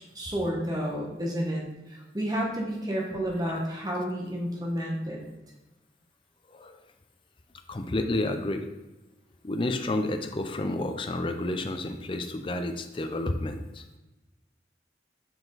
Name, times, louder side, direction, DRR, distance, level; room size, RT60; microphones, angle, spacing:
voice 1, 0.1-5.2, equal, 20° right, -1 dB, 1.3 m, -31 dB
voice 2, 7.7-8.7 9.4-13.8, left 2 dB, 30° left, 7 dB, 0.4 m, -30 dB
7.6 x 4.7 x 3.9 m, 1.0 s
head